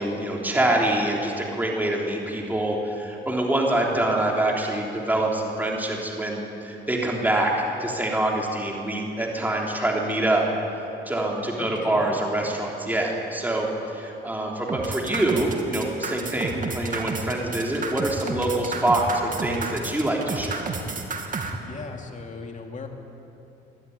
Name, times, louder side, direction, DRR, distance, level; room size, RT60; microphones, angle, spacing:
voice 1, 0.0-10.5 11.1-20.7, right 1 dB, 10° right, -2 dB, 3.5 m, -25 dB
voice 2, 3.7-4.0 11.6-12.1 21.7-22.9, left 4 dB, 40° left, 3 dB, 2.6 m, -38 dB
sound 1, 14.7-21.5, right 4 dB, 40° right, 2.4 m, -31 dB
22.0 x 12.5 x 9.7 m, 2.9 s
cardioid pair, 90°, 20 cm